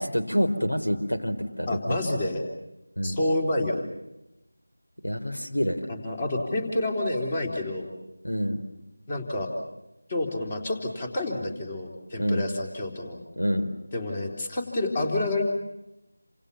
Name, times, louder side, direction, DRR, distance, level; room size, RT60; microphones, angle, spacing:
voice 1, 0.0-2.0 3.0-3.2 5.0-5.8 8.2-8.6 12.2-12.5 13.4-13.7, equal, 80° left, 6 dB, 4.2 m, -27 dB
voice 2, 1.7-2.4 3.0-3.8 5.9-7.9 9.1-9.5 10.1-13.2 13.9-15.4, left 2 dB, 25° left, 2 dB, 3.7 m, -28 dB
28.5 x 27.0 x 7.2 m, 0.90 s
figure-of-eight pair, 170°, 0 cm